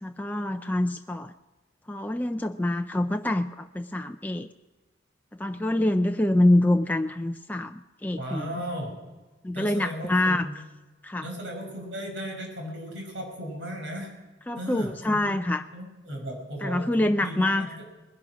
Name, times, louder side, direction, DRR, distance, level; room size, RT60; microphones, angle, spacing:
voice 1, 0.0-1.3 1.9-4.5 5.4-8.5 9.4-10.5 11.0-11.3 14.5-15.6 16.6-17.7, left 1 dB, 10° left, 5 dB, 0.4 m, -25 dB
voice 2, 8.2-9.0 9.5-10.5 11.2-14.1 14.6-15.4 15.7-17.7, equal, 75° right, 1 dB, 5.4 m, -36 dB
20.5 x 11.0 x 6.2 m, 1.2 s
head